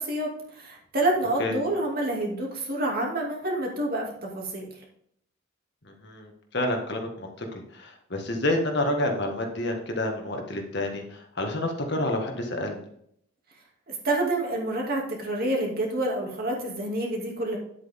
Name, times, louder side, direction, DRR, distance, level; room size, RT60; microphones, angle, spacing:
voice 1, 0.0-4.7 13.9-17.6, right 1 dB, 45° right, -1 dB, 2.6 m, -28 dB
voice 2, 5.8-7.5 7.7-12.9, left 1 dB, 55° left, 2 dB, 1.7 m, -29 dB
9.8 x 8.1 x 3.7 m, 0.69 s
head